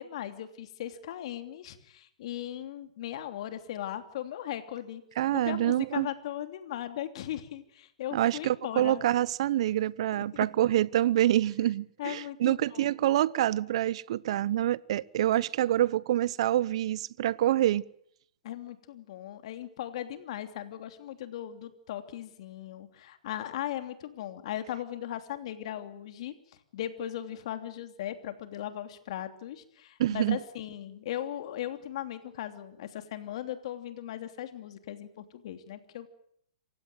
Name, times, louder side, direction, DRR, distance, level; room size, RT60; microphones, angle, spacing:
voice 1, 0.0-5.0 5.3-9.0 10.1-10.5 12.0-12.9 18.4-26.3 26.7-36.1, left 11 dB, 55° left, 3.0 m, -38 dB
voice 2, 5.2-6.1 8.1-17.8 30.0-30.4, right 13 dB, 55° right, 0.9 m, -26 dB
27.0 x 16.0 x 9.1 m
hypercardioid pair, 135°, 4 cm